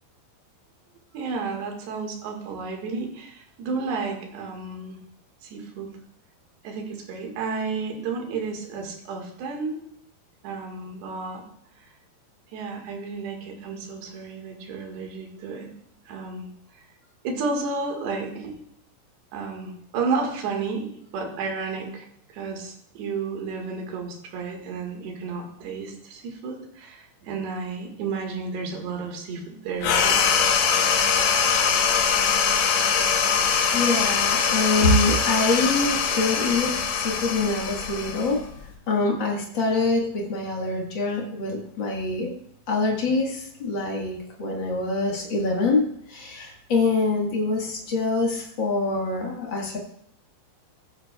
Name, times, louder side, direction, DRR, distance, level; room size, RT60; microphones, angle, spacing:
voice 1, 1.1-5.0 5.4-5.9 6.6-9.8 10.4-11.4 12.5-15.7 16.1-16.8 17.2-18.5 19.3-22.1 22.3-30.4, right 4 dB, 80° right, 2 dB, 3.8 m, -32 dB
sound 1, 29.8-38.7, left 6 dB, 85° left, 3.5 m, -22 dB
voice 2, 33.7-42.3 42.7-49.8, left 3 dB, 60° left, -1 dB, 1.2 m, -25 dB
15.5 x 10.0 x 2.3 m, 0.70 s
omnidirectional pair, 4.8 m